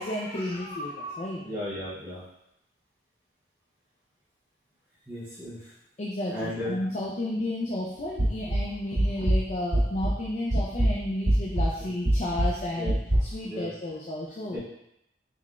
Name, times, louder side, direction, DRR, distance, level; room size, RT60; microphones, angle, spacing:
voice 1, 0.0-1.4 6.0-12.9 13.2-14.6, left 1 dB, 40° left, -3 dB, 0.4 m, -32 dB
voice 2, 1.4-2.2 5.1-5.7 6.3-6.8 11.8-11.9 12.7-13.0 13.4-13.7 14.5-14.6, left 1 dB, 10° right, -11 dB, 0.8 m, -35 dB
sound 1, 8.2-10.2 10.5-13.2, right 1 dB, 70° right, 1.2 m, -25 dB
4.2 x 3.8 x 2.4 m, 0.82 s
head